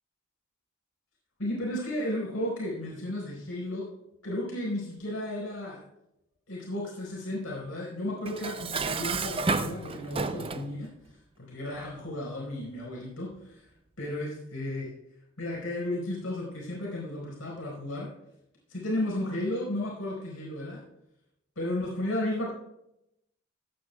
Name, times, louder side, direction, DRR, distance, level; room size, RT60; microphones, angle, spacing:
voice 1, 1.4-3.9 4.2-5.8 6.5-10.9 11.4-13.6 14.0-14.9 15.4-18.1 18.7-20.8 21.6-22.5, left 1 dB, 85° left, -4 dB, 4.5 m, -33 dB
Dishes pots and pans, 8.3-10.7, right 4 dB, 25° right, 0.5 m, -31 dB
16.0 x 9.4 x 2.3 m, 0.82 s
head